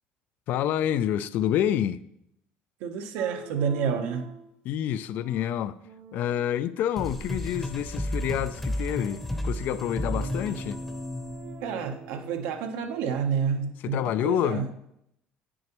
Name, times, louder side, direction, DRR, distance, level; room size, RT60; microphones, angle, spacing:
voice 1, 0.5-2.0 4.6-5.8 6.1-10.8 13.8-14.7, left 10 dB, 60° left, 0.3 m, -28 dB
voice 2, 2.8-4.3 11.6-14.7, right 6 dB, 85° right, 0.9 m, -29 dB
sound 1, 3.1-4.5 5.1-6.9 9.0-12.3, right 7 dB, 50° right, 0.6 m, -46 dB
sound 2, 7.0-12.3, left 1 dB, 5° left, 0.7 m, -33 dB
8.9 x 6.2 x 3.0 m
cardioid pair, 135°, 4 cm